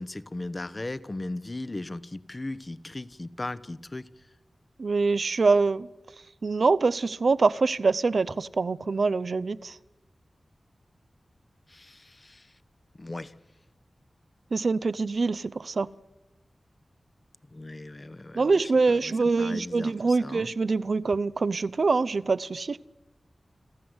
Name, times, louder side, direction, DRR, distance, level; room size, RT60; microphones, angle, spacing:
voice 1, 0.0-4.1 11.7-12.5 13.0-13.3 17.5-20.5, left 2 dB, 35° left, 1.0 m, -37 dB
voice 2, 4.8-5.9 6.4-9.7 14.5-15.9 18.3-22.8, right 4 dB, 65° right, 0.7 m, -24 dB
29.0 x 13.0 x 8.0 m
wide cardioid pair, 70°, 0 cm